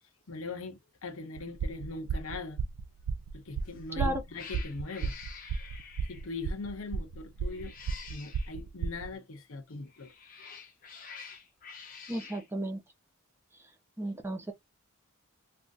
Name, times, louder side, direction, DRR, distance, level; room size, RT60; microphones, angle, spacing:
voice 1, 0.3-2.6 3.3-5.2 6.1-7.7 8.1-10.1 10.5-10.6, left 3 dB, 75° left, 0.7 m, -41 dB
sound 1, 1.4-9.1, right 5 dB, 75° right, 0.3 m, -33 dB
Cat, 3.6-3.9 4.3-6.3 7.5-8.5 9.9-12.5, left 6 dB, 40° left, 0.7 m, -48 dB
voice 2, 12.1-12.8 14.0-14.5, right 1 dB, 10° right, 0.5 m, -33 dB
3.4 x 2.5 x 2.6 m
head